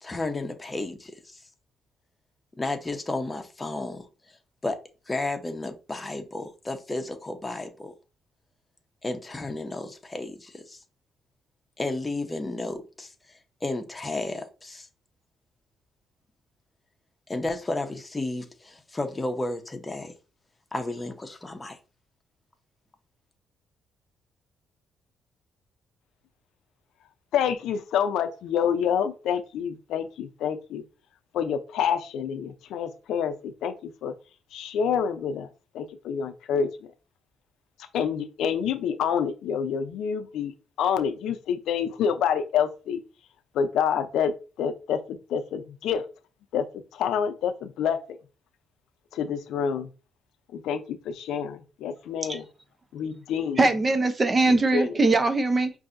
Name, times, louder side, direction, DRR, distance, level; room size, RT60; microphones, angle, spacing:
voice 1, 0.0-1.4 2.6-4.4 4.6-4.8 5.1-7.9 9.0-10.8 11.8-13.1 13.6-14.9 17.3-20.1 20.7-21.8, left 2 dB, 20° left, 0.8 m, -32 dB
voice 2, 27.3-30.8 31.3-33.7 34.0-34.1 34.5-35.5 35.7-36.7 37.9-40.5 40.8-43.0 43.5-44.3 44.6-46.0 46.5-46.7 46.9-48.0 49.1-49.9 50.5-52.5 52.9-53.6 54.5-54.9, left 7 dB, 80° left, 0.5 m, -27 dB
voice 3, 53.6-55.7, right 3 dB, 30° right, 0.6 m, -21 dB
5.4 x 2.6 x 2.5 m
cardioid pair, 90°, 0 cm